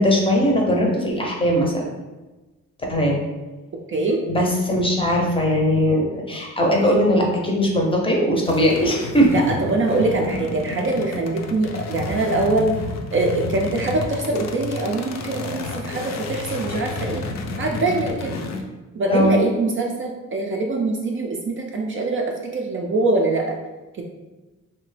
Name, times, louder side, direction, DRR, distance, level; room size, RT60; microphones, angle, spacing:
voice 1, 0.0-1.9 2.9-3.2 4.3-9.3 19.1-19.4, equal, 15° left, -1 dB, 0.6 m, -19 dB
voice 2, 3.9-4.2 9.3-12.8 13.1-17.2 17.6-18.3 18.9-23.5, right 2 dB, 40° right, 1 dB, 0.4 m, -23 dB
sound 1, 8.4-18.6, left 3 dB, 60° left, 0.5 m, -31 dB
2.9 x 2.1 x 3.2 m, 1.2 s
cardioid pair, 95°, 31 cm